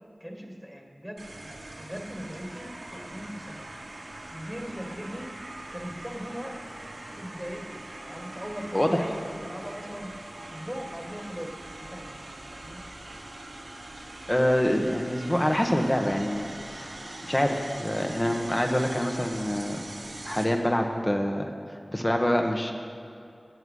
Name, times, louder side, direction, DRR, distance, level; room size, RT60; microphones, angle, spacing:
voice 1, 0.2-3.6 4.3-5.4 5.7-6.6 7.2-10.1 10.5-12.8, equal, ahead, 2 dB, 1.8 m, -39 dB
sound 1, 1.2-20.4, right 1 dB, 80° right, 1.7 m, -42 dB
voice 2, 8.7-9.1 14.3-16.5 16.8-16.9 17.2-19.8 20.2-21.5 21.9-22.7, equal, 25° left, 3 dB, 1.3 m, -25 dB
13.0 x 9.3 x 5.5 m, 2.6 s
wide cardioid pair, 45°, 0 cm